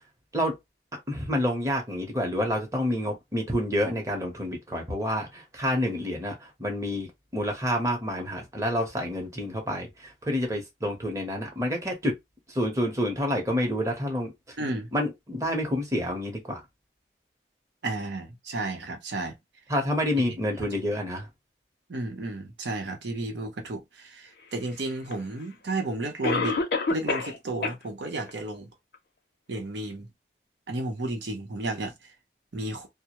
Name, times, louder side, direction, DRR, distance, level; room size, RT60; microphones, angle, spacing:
voice 1, 1.1-7.1 7.3-12.1 12.5-14.6 14.9-16.6 19.7-21.3, equal, 15° right, 0.7 m, -28 dB
voice 2, 14.6-14.9 17.8-19.4 20.2-20.7 21.9-26.6 26.9-28.7 29.5-30.1 30.7-31.9 32.5-32.9, right 2 dB, 75° right, 0.7 m, -33 dB
Cough, 25.1-25.2 26.2-27.4 27.6-27.7 28.3-28.4 28.9-29.0, left 3 dB, 60° left, 0.5 m, -26 dB
2.2 x 2.0 x 2.8 m
head